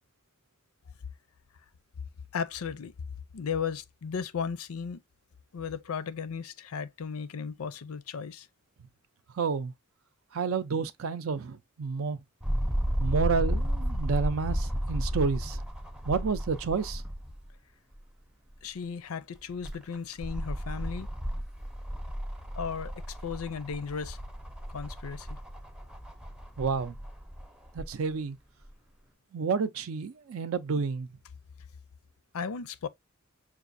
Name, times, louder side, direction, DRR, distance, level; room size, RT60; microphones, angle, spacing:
voice 1, 2.3-2.9 3.3-5.0 5.5-8.5 18.6-21.1 22.6-22.9 23.2-24.2 24.7-25.4 32.3-32.9, left 6 dB, 90° left, 0.5 m, -35 dB
voice 2, 9.4-9.7 10.3-12.2 13.0-15.6 16.1-17.0 26.6-26.9 27.7-28.4 29.3-31.1, right 5 dB, 70° right, 0.5 m, -30 dB
sound 1, 12.4-17.5 17.9-18.0 19.3-27.9 28.7-28.8, equal, 5° right, 0.5 m, -33 dB
5.9 x 2.4 x 2.5 m
head